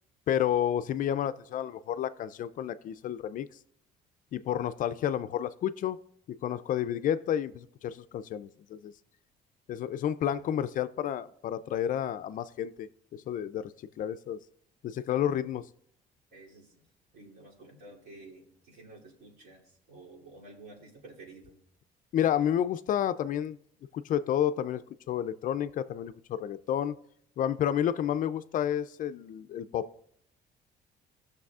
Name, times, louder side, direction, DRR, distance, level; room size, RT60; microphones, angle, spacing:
voice 1, 0.3-3.5 4.3-6.0 6.3-8.9 9.7-13.7 14.0-14.4 14.8-15.7 22.1-23.6 23.9-27.0 27.4-29.9, left 10 dB, 50° left, 0.4 m, -30 dB
voice 2, 16.3-16.8 17.1-21.6, right 2 dB, 65° right, 2.8 m, -51 dB
15.0 x 6.6 x 2.4 m
cardioid pair, 110°, 17 cm